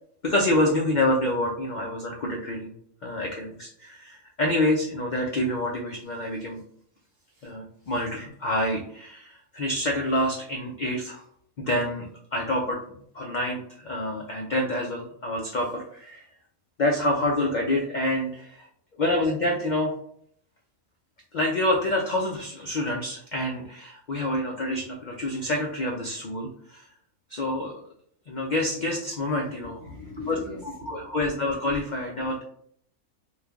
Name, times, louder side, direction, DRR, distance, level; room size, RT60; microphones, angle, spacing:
voice 1, 0.2-2.7 3.0-6.6 7.4-11.2 11.6-12.8 13.1-16.2 16.8-18.7 19.0-19.9 21.3-26.8 27.3-27.8 28.3-29.8 30.3-30.4 30.8-32.4, left 1 dB, 75° left, -1 dB, 0.4 m, -27 dB
voice 2, 29.6-31.2, left 3 dB, 50° right, -1 dB, 0.6 m, -40 dB
3.2 x 2.3 x 3.4 m, 0.65 s
omnidirectional pair, 1.5 m